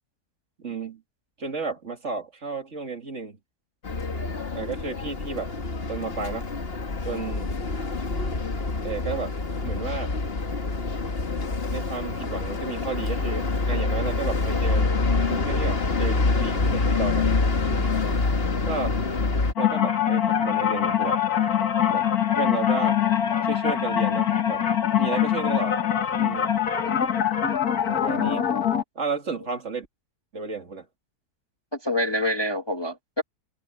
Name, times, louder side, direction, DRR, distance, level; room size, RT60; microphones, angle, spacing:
voice 1, 0.6-1.0 1.4-3.4 4.5-5.5 5.9-6.5 7.0-7.6 8.8-9.3 9.6-10.1 11.7-14.9 15.3-17.3 17.7-18.0 18.6-19.0 19.6-21.2 21.9-22.1 22.4-23.0 23.4-24.6 25.0-25.8 26.2-26.5 27.9-28.5 29.0-29.9 30.3-30.9, right 4 dB, 50° right, 2.5 m, -32 dB
sound 1, 3.8-19.5, left 3 dB, 40° left, 1.9 m, -26 dB
sound 2, 19.6-28.8, left 9 dB, 75° left, 1.9 m, -23 dB
voice 2, 31.7-33.2, left 1 dB, 20° left, 1.3 m, -28 dB
open air
omnidirectional pair, 1.6 m